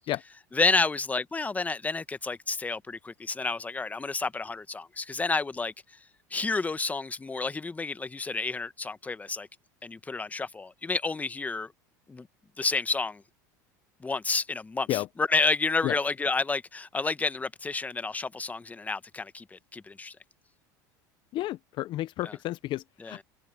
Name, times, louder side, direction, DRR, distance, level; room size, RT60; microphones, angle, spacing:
voice 1, 0.5-5.7 6.3-9.5 9.8-11.7 12.1-12.3 12.6-13.2 14.0-20.2 22.2-22.3 23.0-23.2, left 3 dB, 15° left, 1.1 m, -30 dB
voice 2, 21.3-23.2, left 15 dB, 50° left, 0.8 m, -31 dB
hypercardioid pair, 95°, 10 cm